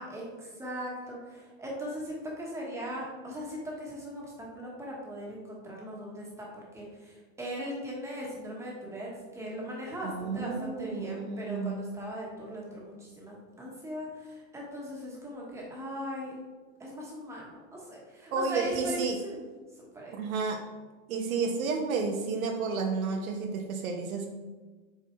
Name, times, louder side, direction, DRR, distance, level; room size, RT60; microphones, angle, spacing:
voice 1, 0.0-16.4 16.8-19.4 19.8-20.1, equal, 5° right, -3 dB, 1.1 m, -39 dB
voice 2, 10.0-11.8 18.3-19.2 20.1-20.6 21.1-24.3, right 4 dB, 85° right, 3 dB, 1.0 m, -31 dB
7.6 x 4.5 x 3.2 m, 1.3 s
supercardioid pair, 155°, 41 cm